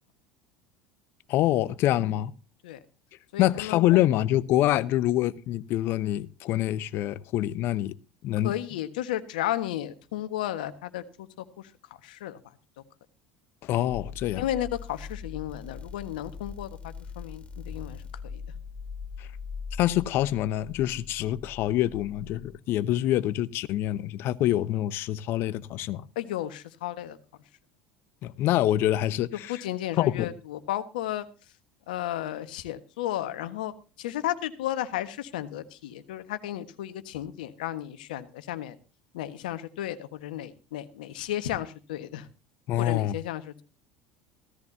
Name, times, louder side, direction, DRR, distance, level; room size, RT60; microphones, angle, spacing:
voice 1, 1.3-2.3 3.4-8.0 8.2-8.5 13.6-14.4 19.2-19.3 19.8-26.1 28.2-29.6 30.0-30.3 42.7-43.2, left 13 dB, 55° left, 0.8 m, -26 dB
voice 2, 3.3-3.8 8.4-11.3 12.0-12.4 14.3-16.7 17.1-18.0 18.3-18.4 26.1-27.2 29.5-31.3 31.9-33.7 34.0-38.8 39.1-42.3 42.8-43.6, left 13 dB, 75° left, 1.4 m, -33 dB
sound 1, 13.9-22.5, left 5 dB, 25° left, 2.3 m, -41 dB
16.0 x 14.5 x 2.8 m
hypercardioid pair, 75°, 5 cm